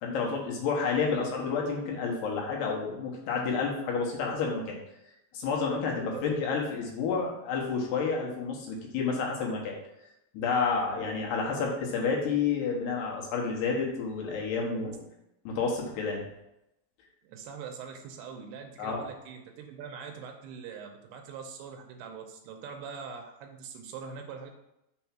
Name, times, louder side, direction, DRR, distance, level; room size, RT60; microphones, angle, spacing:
voice 1, 0.0-4.8 5.3-9.7 10.3-15.0 15.4-16.2 18.8-19.1, left 5 dB, 75° left, -1 dB, 3.2 m, -30 dB
voice 2, 6.0-6.3 14.7-15.0 17.2-24.5, right 6 dB, 80° right, 4 dB, 2.6 m, -43 dB
7.0 x 3.5 x 5.9 m, 0.86 s
omnidirectional pair, 5.0 m